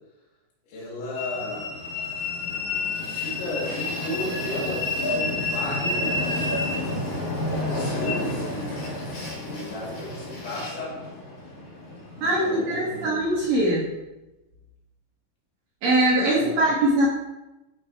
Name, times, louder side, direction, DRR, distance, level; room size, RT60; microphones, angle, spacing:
voice 1, 0.7-1.8 3.1-6.7 7.5-9.0 9.4-11.0 12.1-13.1 16.3-16.7, left 1 dB, 75° left, -4 dB, 5.6 m, -34 dB
Train, 1.1-13.6, left 2 dB, 35° left, 4.3 m, -30 dB
voice 2, 12.2-13.9 15.8-17.1, right 1 dB, 55° right, -5 dB, 3.4 m, -22 dB
14.0 x 10.5 x 3.3 m, 1.0 s
omnidirectional pair, 5.3 m